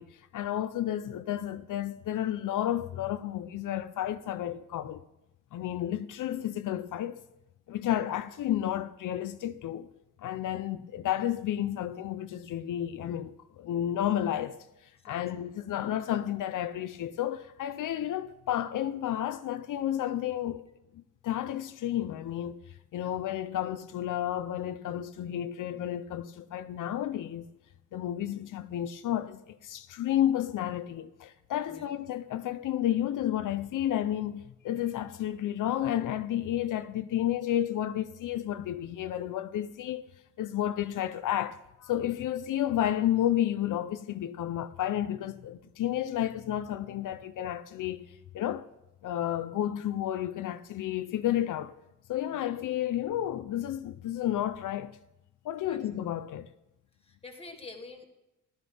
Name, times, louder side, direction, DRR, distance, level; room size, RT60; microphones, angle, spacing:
voice 1, 0.0-5.0 5.5-7.2 7.7-9.9 10.2-14.6 15.0-20.6 21.2-22.6 22.9-27.4 27.9-40.0 40.4-48.0 48.3-48.7 49.0-51.7 52.1-55.0 55.4-56.5, left 11 dB, 80° left, 0.6 m, -31 dB
voice 2, 57.0-58.1, left 3 dB, 20° left, 1.6 m, -46 dB
15.0 x 12.0 x 3.4 m
wide cardioid pair, 150°, 31 cm